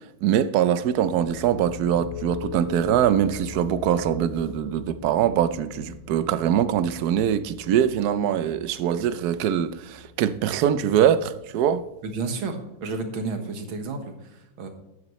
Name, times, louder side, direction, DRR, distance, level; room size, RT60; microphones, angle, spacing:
voice 1, 0.2-11.8, right 9 dB, 65° right, 1.0 m, -23 dB
sound 1, 0.9-12.4, left 8 dB, 70° left, 1.8 m, -41 dB
voice 2, 12.0-14.7, right 3 dB, 90° right, 2.2 m, -31 dB
12.5 x 9.6 x 3.1 m
omnidirectional pair, 2.1 m